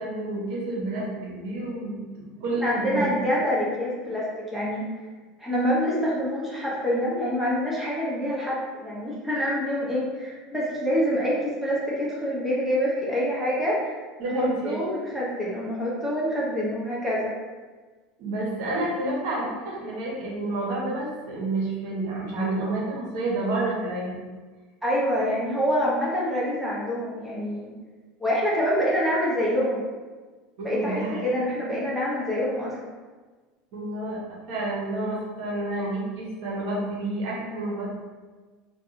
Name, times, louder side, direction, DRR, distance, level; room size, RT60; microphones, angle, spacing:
voice 1, 0.0-3.1 14.2-14.8 18.2-24.2 30.6-31.2 33.7-34.2 34.5-38.0, right 2 dB, 70° right, -4 dB, 1.1 m, -29 dB
voice 2, 2.6-4.9 5.4-17.3 24.8-27.7 28.2-29.8 30.6-32.8, equal, 5° right, -7 dB, 0.8 m, -26 dB
2.7 x 2.4 x 3.7 m, 1.4 s
supercardioid pair, 105°, 3 cm